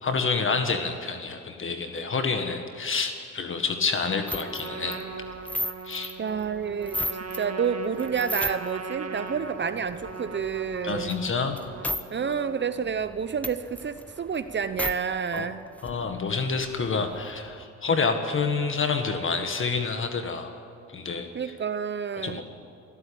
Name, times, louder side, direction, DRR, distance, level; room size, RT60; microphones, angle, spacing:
voice 1, 0.0-5.0 5.9-6.1 10.8-11.6 15.3-15.5 15.8-20.5 20.9-21.5 22.2-22.4, left 4 dB, 40° left, 6 dB, 1.7 m, -28 dB
Trumpet, 4.2-12.9, right 4 dB, 55° right, 2.1 m, -39 dB
sound 1, 4.3-7.4 7.8-8.9 9.3-12.0 12.3-12.4 12.7-14.9 15.4-15.5 15.7-17.6, left 1 dB, 5° left, 1.0 m, -36 dB
voice 2, 6.2-11.2 12.1-15.6 21.3-22.4, right 6 dB, 35° right, 12 dB, 0.8 m, -29 dB
23.5 x 13.0 x 8.7 m, 2.5 s
cardioid pair, 90°, 30 cm